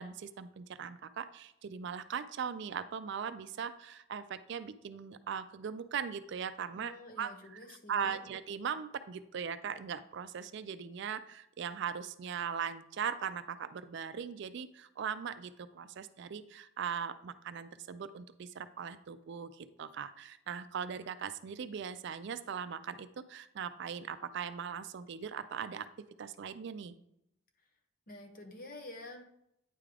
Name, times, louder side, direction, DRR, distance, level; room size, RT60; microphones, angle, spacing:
voice 1, 0.0-7.3 7.9-25.9 26.2-27.0, right 7 dB, 55° right, 12 dB, 0.4 m, -39 dB
voice 2, 6.7-8.2 27.6-27.7 28.1-29.2, left 2 dB, 45° left, 4 dB, 0.9 m, -49 dB
9.2 x 3.6 x 3.3 m, 0.77 s
head